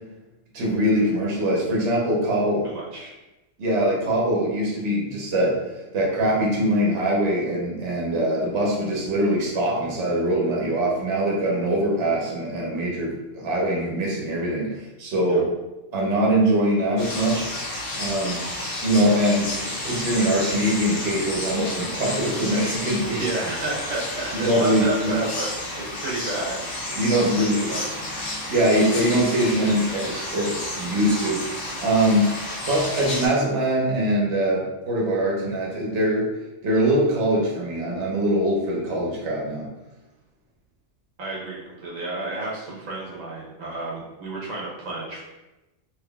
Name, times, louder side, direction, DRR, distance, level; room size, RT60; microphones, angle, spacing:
voice 1, 0.5-2.7 3.6-15.5 15.9-17.5 18.0-18.5 18.8-23.3 24.3-25.2 27.0-27.7 28.3-32.4 32.6-36.3 36.6-39.7, right 1 dB, 65° right, -3 dB, 1.1 m, -23 dB
voice 2, 2.6-3.1 15.3-15.4 23.1-26.6 27.1-27.4 27.7-28.0 41.2-45.2, right 2 dB, 85° right, -4 dB, 1.3 m, -31 dB
sound 1, 17.0-33.3, left 1 dB, 90° left, 1.4 m, -31 dB
3.5 x 3.2 x 2.3 m, 1.0 s
omnidirectional pair, 1.3 m